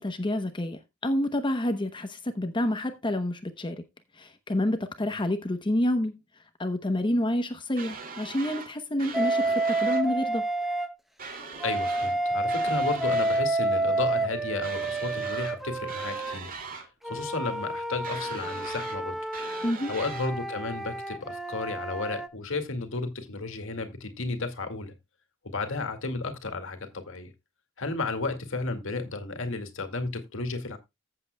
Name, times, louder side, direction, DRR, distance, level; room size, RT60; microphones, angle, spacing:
voice 1, 0.0-3.8 4.1-6.1 6.6-10.5 19.6-19.9, left 1 dB, 25° left, 0.8 m, -28 dB
sound 1, 7.8-8.7 9.0-10.0 11.2-12.2 12.5-13.4 14.6-15.6 15.9-16.9 18.0-19.0 19.3-20.3, right 4 dB, 40° right, 2.6 m, -40 dB
Wind instrument woodwind instrument, 9.1-10.9 11.6-16.4 17.0-22.3, right 2 dB, ahead, 1.0 m, -29 dB
voice 2, 11.6-16.5 17.0-19.2 19.9-24.9 25.4-27.3 27.8-30.8, left 3 dB, 65° left, 2.1 m, -33 dB
15.0 x 7.7 x 2.2 m
head